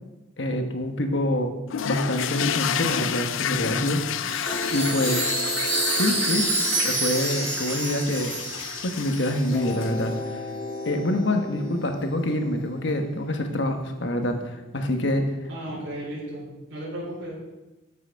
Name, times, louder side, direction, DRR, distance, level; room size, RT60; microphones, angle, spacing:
voice 1, 0.4-1.5 1.8-4.0 4.7-5.4 5.9-6.4 6.8-8.3 8.8-10.4 10.8-15.2, left 1 dB, 65° left, 5 dB, 1.2 m, -26 dB
sound 1, 1.7-10.2, left 9 dB, 80° left, 0.5 m, -30 dB
Chime, 4.2-9.8, right 3 dB, 85° right, 4.2 m, -28 dB
sound 2, 4.5-8.8 9.5-14.5, left 1 dB, 35° left, 1.3 m, -37 dB
voice 2, 15.5-17.3, right 1 dB, 65° right, -7 dB, 3.9 m, -35 dB
9.7 x 7.7 x 5.7 m, 1.1 s
head